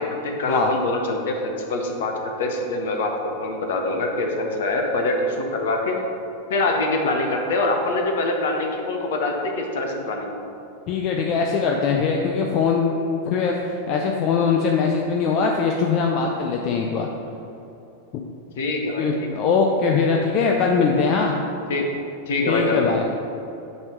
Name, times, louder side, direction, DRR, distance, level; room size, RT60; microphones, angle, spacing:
voice 1, 0.0-6.0 6.5-10.3 18.6-19.3 21.7-21.9 22.3-22.9, left 2 dB, 55° left, 2 dB, 1.0 m, -24 dB
voice 2, 10.9-17.1 19.0-21.4 22.5-23.0, left 5 dB, 40° left, 1 dB, 0.5 m, -21 dB
8.0 x 3.5 x 6.0 m, 2.8 s
figure-of-eight pair, 90°, 0 cm